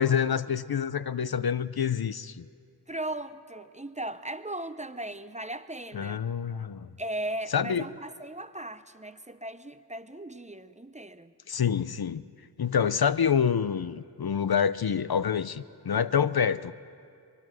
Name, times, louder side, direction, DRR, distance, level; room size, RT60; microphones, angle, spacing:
voice 1, 0.0-2.4 5.9-6.9 7.5-7.8 11.5-12.2 12.6-16.7, left 7 dB, 60° left, 16 dB, 0.6 m, -27 dB
voice 2, 2.9-6.2 7.0-11.3, right 1 dB, 15° right, 12 dB, 0.7 m, -37 dB
23.5 x 23.0 x 6.3 m, 2.4 s
wide cardioid pair, 50°, 42 cm